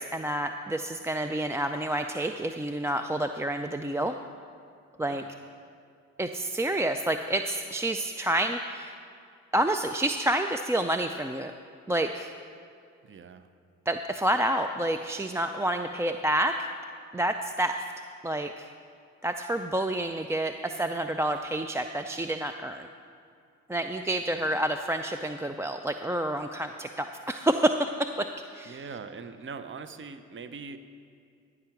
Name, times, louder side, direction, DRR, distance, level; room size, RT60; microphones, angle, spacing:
voice 1, 0.0-4.1 5.0-5.2 6.2-8.9 9.5-11.5 11.9-12.3 13.9-16.7 17.1-17.8 18.2-18.7 19.2-22.9 23.7-27.8 28.2-28.3 28.5-28.8, right 1 dB, 10° right, 7 dB, 0.3 m, -29 dB
voice 2, 13.0-13.5 24.3-24.6 28.7-30.8, right 5 dB, 35° right, 10 dB, 0.7 m, -42 dB
14.0 x 4.9 x 5.9 m, 2.3 s
supercardioid pair, 50°, 33 cm